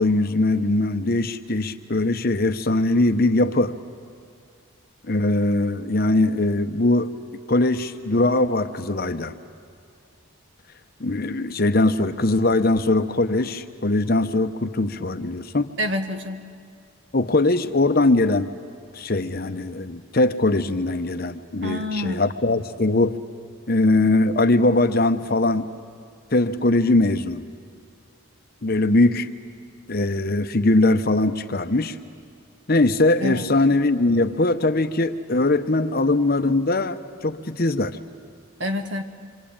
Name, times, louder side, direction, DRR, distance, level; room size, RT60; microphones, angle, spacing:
voice 1, 0.0-3.7 5.1-7.1 7.5-9.3 11.0-15.7 17.1-18.5 18.9-23.2 23.7-25.7 26.3-27.4 28.6-29.3 29.9-32.0 32.7-38.0, left 2 dB, 45° left, 9 dB, 0.9 m, -21 dB
voice 2, 15.8-16.5 21.6-22.2 33.2-33.5 38.6-39.0, left 1 dB, 60° right, 6 dB, 1.6 m, -27 dB
27.0 x 25.5 x 8.8 m, 2.4 s
head